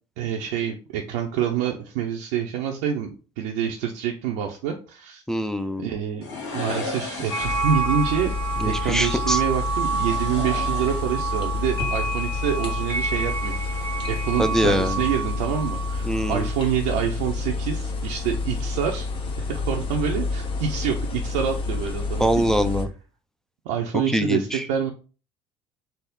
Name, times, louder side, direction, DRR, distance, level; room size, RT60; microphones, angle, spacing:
voice 1, 0.2-3.1 3.4-5.2 5.8-6.3 6.5-8.3 8.6-13.8 14.1-19.1 19.4-22.3 23.7-24.9, right 8 dB, 65° right, 1 dB, 0.5 m, -27 dB
voice 2, 5.3-5.9 8.6-9.4 14.4-15.0 16.0-16.5 22.2-22.9 23.9-24.7, equal, 5° left, 7 dB, 0.4 m, -23 dB
sound 1, 6.2-7.9 9.4-11.4 11.7-11.8, left 2 dB, 75° left, 1.3 m, -35 dB
sound 2, 7.3-16.6, right 4 dB, 20° left, 1.3 m, -29 dB
sound 3, 7.4-22.8, left 3 dB, 40° left, 0.8 m, -29 dB
3.4 x 2.0 x 3.7 m, 0.35 s
hypercardioid pair, 65°, 14 cm